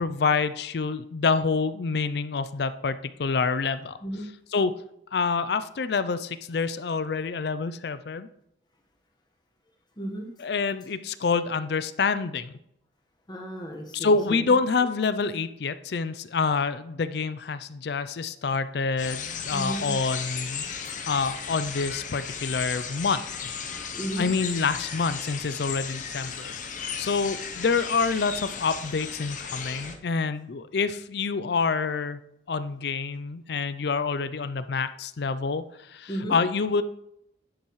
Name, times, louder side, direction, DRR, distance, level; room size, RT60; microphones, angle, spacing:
voice 1, 0.0-4.0 4.5-4.7 5.1-8.3 10.4-12.5 13.9-20.6 21.1-23.8 24.2-26.6 27.0-32.2 32.5-36.8, left 4 dB, 60° left, 13 dB, 0.4 m, -27 dB
voice 2, 10.0-10.3 13.3-14.4 19.5-20.0 23.9-24.3 36.1-36.4, right 1 dB, 20° left, 1 dB, 1.3 m, -34 dB
sound 1, 19.0-30.0, left 6 dB, 40° left, 0.8 m, -35 dB
10.0 x 7.0 x 3.2 m, 0.79 s
head